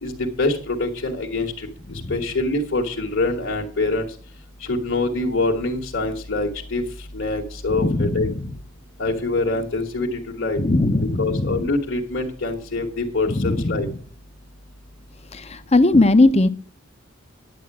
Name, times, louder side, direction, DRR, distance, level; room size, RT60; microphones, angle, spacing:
voice 1, 0.0-1.7 2.1-4.1 4.7-6.8 7.1-8.3 9.0-10.6 11.0-13.9, left 2 dB, 55° left, -2 dB, 1.8 m, -24 dB
voice 2, 7.7-8.5 10.6-11.7 13.3-13.9 15.3-16.5, left 2 dB, 30° left, 12 dB, 0.8 m, -19 dB
10.5 x 8.7 x 6.1 m, 0.43 s
head